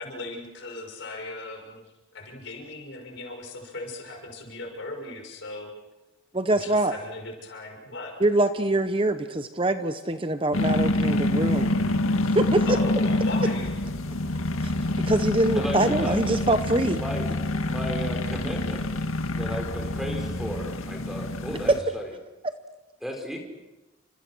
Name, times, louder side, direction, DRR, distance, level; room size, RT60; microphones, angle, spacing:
voice 1, 0.0-1.8 2.1-5.7 6.5-8.1 12.7-13.8, left 2 dB, 60° left, 2 dB, 6.4 m, -38 dB
voice 2, 6.3-6.9 8.2-11.7 12.2-12.8 15.0-17.0 21.7-21.8 22.4-22.5, right 2 dB, 25° right, 9 dB, 0.9 m, -24 dB
sound 1, 10.5-21.8, left 1 dB, 80° left, 2.0 m, -26 dB
voice 3, 15.6-16.2 17.0-17.3 17.7-19.1 19.3-22.1 23.0-23.4, equal, ahead, 2 dB, 4.6 m, -34 dB
30.0 x 26.5 x 6.3 m, 1.1 s
head